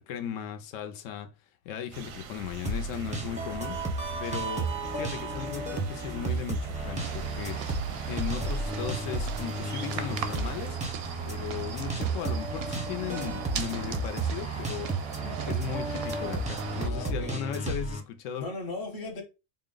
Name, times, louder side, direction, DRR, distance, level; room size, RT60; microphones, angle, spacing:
voice 1, 0.0-1.3 1.6-3.8 4.2-10.8 11.2-14.9 15.2-18.5, left 9 dB, 75° left, 0.9 m, -37 dB
sound 1, 1.9-10.7, right 6 dB, 85° right, 1.0 m, -42 dB
sound 2, 2.6-18.0, right 2 dB, 10° right, 0.5 m, -33 dB
sound 3, 7.0-16.9, right 8 dB, 65° right, 0.7 m, -39 dB
voice 2, 16.7-17.4 18.4-19.2, left 3 dB, 50° left, 1.0 m, -37 dB
3.9 x 2.1 x 3.7 m
omnidirectional pair, 1.4 m